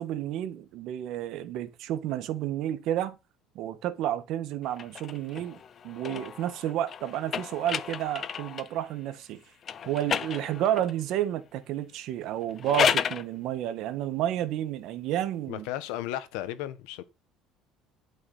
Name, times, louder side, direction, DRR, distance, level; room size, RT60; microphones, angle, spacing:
voice 1, 0.0-3.2 3.5-9.4 9.8-15.7, right 12 dB, 55° right, 1.5 m, -31 dB
sound 1, 4.7-8.8 9.6-11.0 12.4-13.3, left 8 dB, 30° left, 0.6 m, -32 dB
voice 2, 15.5-17.0, left 13 dB, 85° left, 1.4 m, -34 dB
11.5 x 6.4 x 5.6 m
cardioid pair, 170°, 0 cm